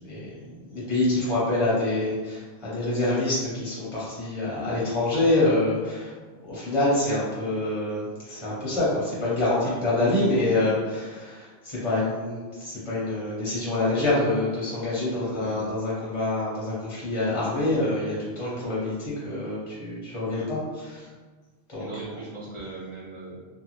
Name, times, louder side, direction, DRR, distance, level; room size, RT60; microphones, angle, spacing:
voice 1, 0.0-6.1 6.5-20.6 20.8-21.0 21.7-21.9, left 2 dB, 30° left, -8 dB, 0.6 m, -26 dB
voice 2, 15.1-15.7 20.3-20.5 21.8-23.5, right 3 dB, 40° right, -7 dB, 0.5 m, -39 dB
2.5 x 2.3 x 2.9 m, 1.4 s
omnidirectional pair, 1.3 m